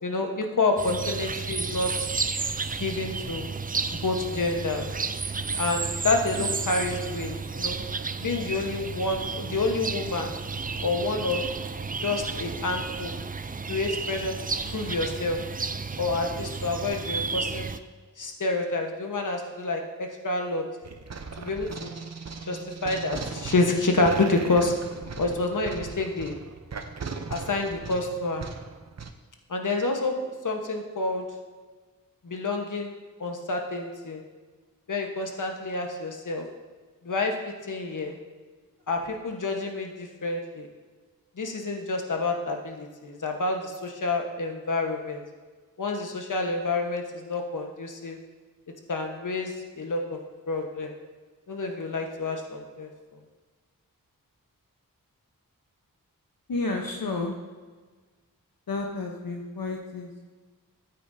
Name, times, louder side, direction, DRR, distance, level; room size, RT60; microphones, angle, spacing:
voice 1, 0.0-1.9 2.8-3.5 3.9-4.9 5.6-7.8 8.2-10.3 10.8-11.4 12.0-13.1 13.7-14.3 14.7-15.4 16.0-17.7 18.2-20.6 21.4-21.9 22.4-24.7 25.2-26.3 27.3-28.4 29.5-31.2 32.2-34.2 34.9-36.4 37.0-38.1 38.9-40.7 41.4-45.2 45.8-48.2 48.9-50.2 50.5-50.9 51.5-52.9, left 3 dB, 60° left, 3 dB, 1.3 m, -28 dB
sound 1, 0.8-17.8, right 4 dB, 25° right, 0.4 m, -32 dB
sound 2, 20.8-29.1, right 5 dB, 50° right, 0.7 m, -38 dB
voice 2, 56.5-57.4 58.7-60.2, left 3 dB, 80° left, 1 dB, 1.0 m, -31 dB
13.5 x 8.4 x 2.7 m, 1.4 s
wide cardioid pair, 80°, 35 cm